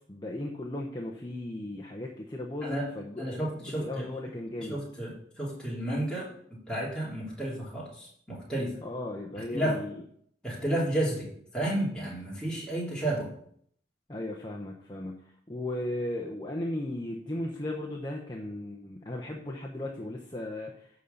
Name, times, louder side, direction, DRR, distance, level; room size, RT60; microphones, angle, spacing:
voice 1, 0.1-4.8 8.8-9.9 14.1-15.2 15.5-20.7, left 1 dB, 25° left, -1 dB, 0.9 m, -36 dB
voice 2, 3.2-4.1 4.6-6.3 6.7-8.7 9.3-9.8 10.4-13.3, right 1 dB, 5° left, -6 dB, 3.0 m, -32 dB
11.0 x 4.0 x 7.0 m, 0.65 s
head